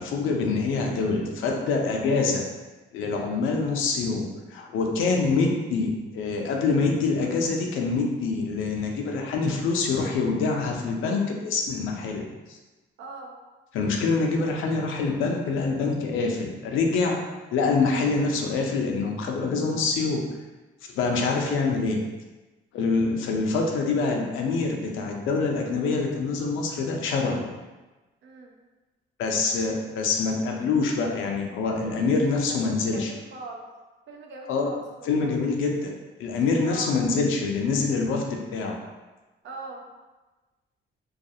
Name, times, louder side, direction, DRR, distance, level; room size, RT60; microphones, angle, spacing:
voice 1, 0.0-2.4 2.9-12.6 13.7-17.2 17.5-20.2 20.9-22.0 22.7-27.5 29.2-33.1 34.5-34.7 35.0-35.9 36.2-38.8, left 4 dB, 85° left, 1 dB, 0.5 m, -25 dB
voice 2, 13.0-13.3 21.0-21.3 28.2-28.5 32.6-33.6 34.1-35.3 36.6-36.9 39.4-39.8, right 3 dB, 70° right, 1 dB, 0.5 m, -41 dB
2.4 x 2.3 x 2.7 m, 1.2 s
cardioid pair, 90°, 20 cm